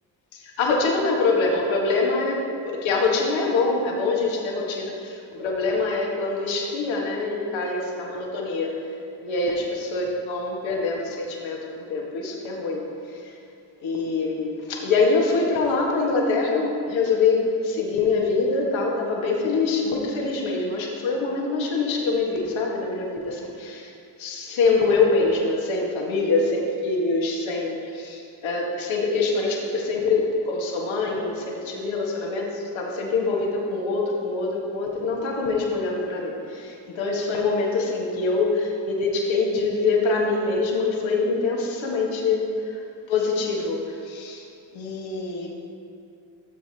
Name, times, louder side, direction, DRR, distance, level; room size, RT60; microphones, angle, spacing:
voice 1, 0.3-8.7 9.2-13.3 13.8-23.9 24.2-44.4 44.7-45.5, left 3 dB, 70° left, -1 dB, 1.6 m, -24 dB
13.5 x 7.4 x 2.8 m, 2.6 s
hypercardioid pair, 45°, 48 cm